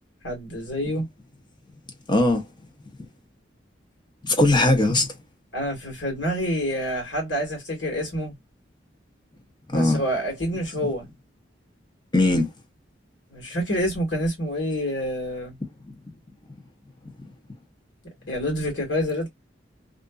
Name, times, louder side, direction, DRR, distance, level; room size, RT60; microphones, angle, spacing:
voice 1, 0.2-1.1 5.5-8.3 9.7-11.0 13.3-15.6 18.3-19.3, equal, 70° left, 1.6 m, -27 dB
voice 2, 2.1-2.4 4.2-5.1 9.7-10.0 12.1-12.5, left 2 dB, 25° left, 0.8 m, -19 dB
2.5 x 2.5 x 2.3 m
head